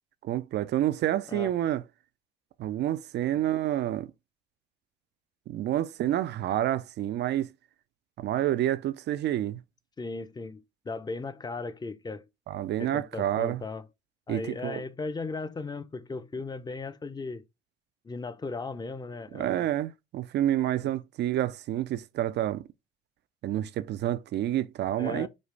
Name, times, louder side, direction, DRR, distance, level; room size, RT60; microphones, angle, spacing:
voice 1, 0.2-1.8 2.6-4.1 5.5-7.5 8.2-9.6 12.5-13.6 14.3-14.8 19.3-22.7 23.4-25.3, right 12 dB, 55° right, 0.4 m, -28 dB
voice 2, 10.0-12.3 12.8-13.8 14.3-17.4 18.0-19.7 25.0-25.3, left 3 dB, 20° left, 0.6 m, -37 dB
5.2 x 2.3 x 3.3 m
supercardioid pair, 70°, 21 cm